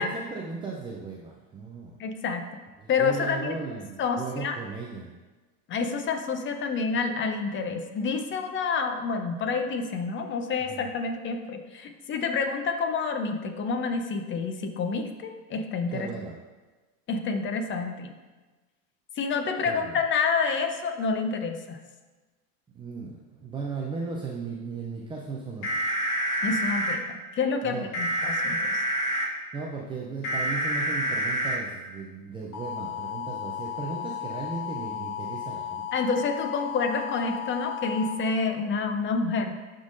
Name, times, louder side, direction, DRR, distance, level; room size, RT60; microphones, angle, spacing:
voice 1, 0.0-2.0 2.8-5.1 10.7-10.9 15.9-16.3 19.6-19.9 22.7-26.0 27.6-27.9 29.5-35.8, right 4 dB, 10° right, -1 dB, 0.4 m, -36 dB
voice 2, 2.0-2.5 2.9-3.6 4.0-4.6 5.7-16.1 17.1-18.1 19.2-21.8 26.4-28.8 35.9-39.6, left 4 dB, 25° left, 6 dB, 0.6 m, -28 dB
sound 1, 25.6-26.9 27.9-29.3 30.2-31.6 32.5-38.1, left 1 dB, 70° left, 1.7 m, -30 dB
11.5 x 3.8 x 2.6 m, 1.2 s
hypercardioid pair, 110°, 44 cm